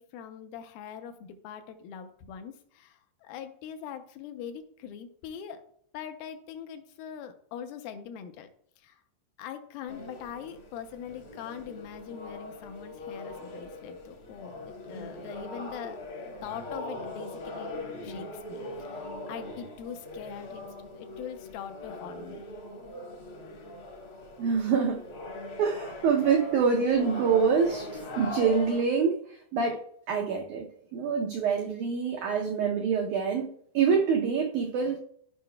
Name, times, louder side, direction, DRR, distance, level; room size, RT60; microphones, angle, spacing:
voice 1, 0.0-5.6 5.9-8.5 8.8-9.0 9.4-16.0 16.4-20.6 21.0-22.4, left 8 dB, 80° left, 7 dB, 2.4 m, -42 dB
sound 1, 9.9-28.8, left 2 dB, 60° left, 1.4 m, -41 dB
voice 2, 24.4-25.0 25.6-29.2 29.5-33.5 33.7-35.0, right 6 dB, 90° right, 1 dB, 1.7 m, -26 dB
13.5 x 5.5 x 2.2 m, 0.64 s
omnidirectional pair, 4.5 m